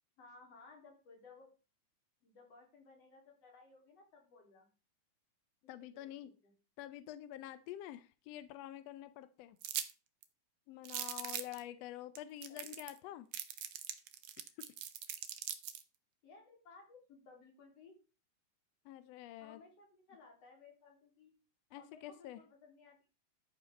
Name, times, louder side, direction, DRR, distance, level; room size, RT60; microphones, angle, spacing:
voice 1, 0.2-1.5 2.2-4.7 5.8-6.5 12.5-12.8 13.0-13.1 16.2-18.0 19.4-21.3 21.7-23.1, left 4 dB, 55° left, 0 dB, 4.2 m, -59 dB
voice 2, 5.7-6.3 6.8-9.6 10.7-13.3 18.8-19.6 21.7-22.4, left 13 dB, 80° left, 13 dB, 1.5 m, -47 dB
sound 1, 9.6-9.9 10.2-10.3 10.8-11.6 12.2-12.3 12.4-13.0 13.3-15.8, right 10 dB, 85° right, 1.2 m, -41 dB
13.0 x 5.3 x 5.2 m, 0.33 s
omnidirectional pair, 3.6 m